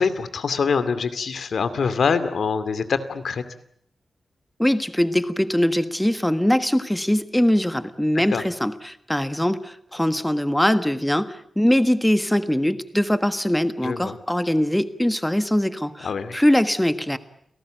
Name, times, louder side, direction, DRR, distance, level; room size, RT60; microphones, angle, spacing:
voice 1, 0.0-3.4 8.3-8.4 13.8-14.1 16.0-16.4, left 5 dB, 75° left, 13 dB, 2.4 m, -24 dB
voice 2, 4.6-17.2, equal, 5° left, 11 dB, 1.5 m, -22 dB
29.5 x 18.5 x 9.1 m, 0.69 s
wide cardioid pair, 140°, 0 cm